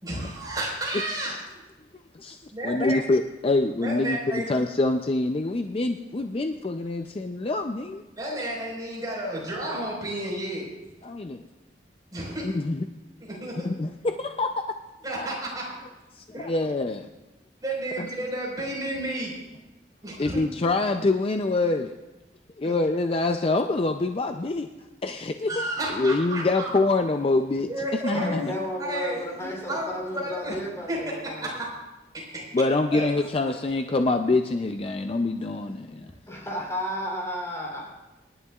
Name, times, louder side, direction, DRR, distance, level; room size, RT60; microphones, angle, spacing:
voice 1, 0.0-1.6 2.5-3.0 3.8-4.4 8.2-10.7 12.1-12.5 13.2-13.7 15.0-15.7 16.3-16.5 17.6-19.3 20.0-20.4 22.6-22.7 25.5-26.7 27.7-28.5 28.8-30.5 30.9-31.0 31.4-31.6 32.9-33.1, right 1 dB, 20° right, -4 dB, 4.4 m, -32 dB
voice 2, 2.1-8.0 11.0-11.4 12.4-12.8 13.6-14.8 16.1-17.1 18.0-18.1 20.2-22.0 22.6-24.7 25.0-25.6 25.9-27.7 28.0-28.5 32.5-36.4, left 2 dB, 30° left, 6 dB, 0.4 m, -25 dB
voice 3, 28.1-31.5 33.2-33.6 36.3-37.9, equal, 15° left, -3 dB, 3.3 m, -33 dB
26.5 x 11.0 x 2.4 m, 1.1 s
head